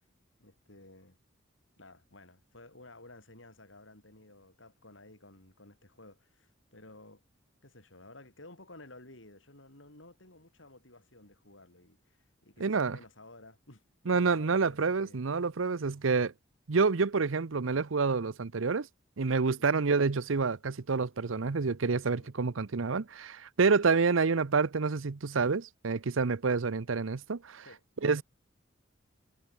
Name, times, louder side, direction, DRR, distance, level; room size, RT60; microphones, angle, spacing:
voice 1, 0.4-1.2 1.8-7.2 7.6-15.2 19.6-19.7 22.1-22.5 27.7-28.2, left 2 dB, 70° left, 7.0 m, -54 dB
voice 2, 12.6-13.0 14.1-16.3 16.7-18.9 19.2-27.6 28.0-28.2, right 4 dB, 75° right, 0.7 m, -28 dB
head